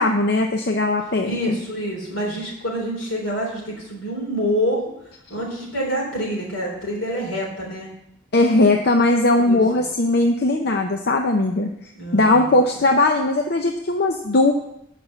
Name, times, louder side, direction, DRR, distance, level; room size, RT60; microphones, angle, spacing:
voice 1, 0.0-1.6 8.3-14.5, left 2 dB, 50° left, 3 dB, 0.6 m, -19 dB
voice 2, 1.2-4.8 5.3-7.9 8.5-8.7 9.4-9.8 11.9-12.5, equal, 80° left, -3 dB, 4.0 m, -27 dB
7.7 x 5.9 x 6.9 m, 0.78 s
head